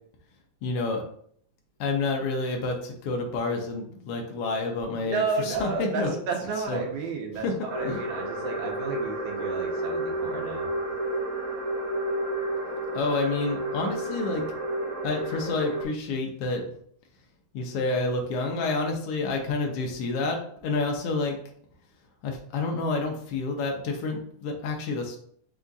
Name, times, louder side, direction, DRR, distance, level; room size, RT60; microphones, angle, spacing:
voice 1, 0.6-1.0 1.8-6.2 6.7-6.8 7.4-8.0 12.9-14.4 15.0-16.6 17.5-21.4 22.2-25.2, left 3 dB, 80° left, 2 dB, 1.3 m, -29 dB
voice 2, 5.0-10.7, right 4 dB, 90° right, 0 dB, 2.5 m, -32 dB
sound 1, 7.7-15.8, right 1 dB, 45° right, 1.3 m, -31 dB
5.4 x 2.4 x 3.9 m, 0.62 s
omnidirectional pair, 3.5 m